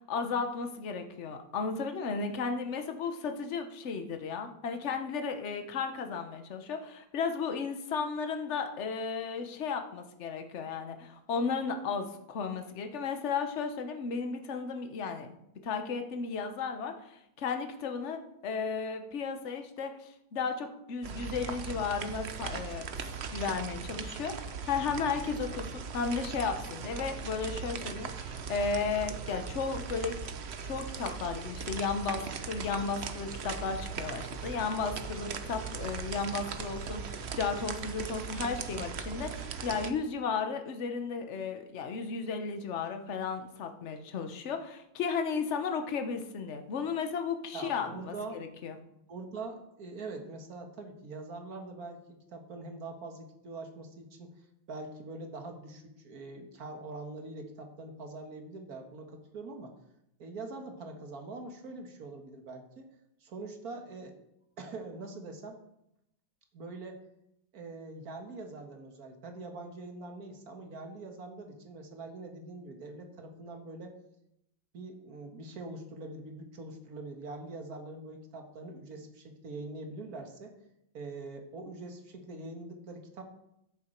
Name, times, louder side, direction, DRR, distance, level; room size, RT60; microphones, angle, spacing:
voice 1, 0.0-15.4 15.6-22.9 23.3-30.2 30.6-48.8, left 5 dB, 45° left, 6 dB, 1.1 m, -34 dB
sound 1, 21.0-39.9, right 5 dB, 65° right, 0.6 m, -39 dB
voice 2, 47.5-48.4 49.1-54.4 54.7-59.7 60.2-62.9 63.2-64.1 64.6-65.6 66.5-67.0 67.5-73.9 74.7-80.5 80.9-83.2, right 3 dB, 50° right, 4 dB, 1.9 m, -43 dB
14.0 x 7.0 x 4.5 m, 0.81 s
omnidirectional pair, 2.1 m